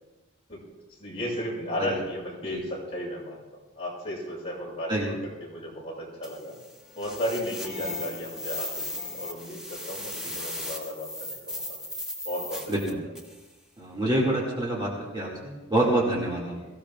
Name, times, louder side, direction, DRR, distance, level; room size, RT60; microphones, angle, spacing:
voice 1, 1.0-3.4 3.7-5.1 5.4-6.5 6.9-11.8 12.2-13.0 16.5-16.7, equal, 30° left, -5 dB, 6.1 m, -34 dB
sound 1, 6.2-13.4, left 1 dB, 5° right, 1.4 m, -37 dB
voice 2, 13.8-16.5, right 1 dB, 20° right, -4 dB, 2.1 m, -27 dB
23.0 x 15.5 x 2.4 m, 1.2 s
head